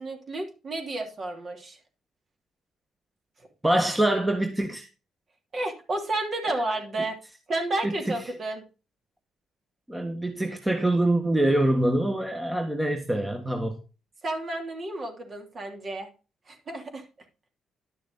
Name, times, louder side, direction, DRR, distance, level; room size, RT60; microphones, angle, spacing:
voice 1, 0.0-1.8 5.5-7.2 7.5-8.6 14.2-16.1 16.5-17.0, right 2 dB, 45° right, 3.0 m, -31 dB
voice 2, 3.6-4.9 7.8-7.9 9.9-13.8, right 1 dB, 10° right, 1.6 m, -24 dB
11.5 x 6.6 x 3.9 m
cardioid pair, 90°, 0 cm